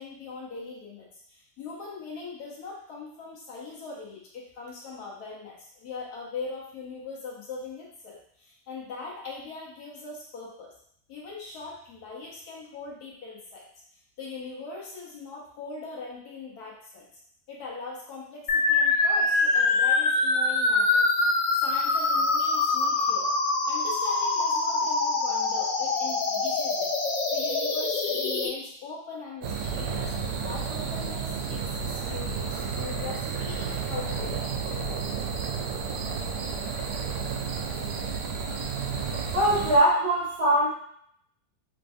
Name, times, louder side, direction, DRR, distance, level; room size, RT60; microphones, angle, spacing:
voice 1, 0.0-10.7 11.1-13.6 14.2-17.1 17.5-21.1 21.5-23.3 23.6-26.9 27.3-34.5, left 4 dB, 65° left, -3 dB, 1.2 m, -41 dB
sound 1, 18.5-28.5, left 3 dB, 85° left, 1.3 m, -24 dB
sound 2, 29.4-39.8, right 5 dB, 75° right, 1.1 m, -31 dB
voice 2, 39.3-40.7, right 1 dB, 40° right, -8 dB, 0.9 m, -21 dB
3.4 x 3.2 x 2.5 m, 0.66 s
omnidirectional pair, 1.9 m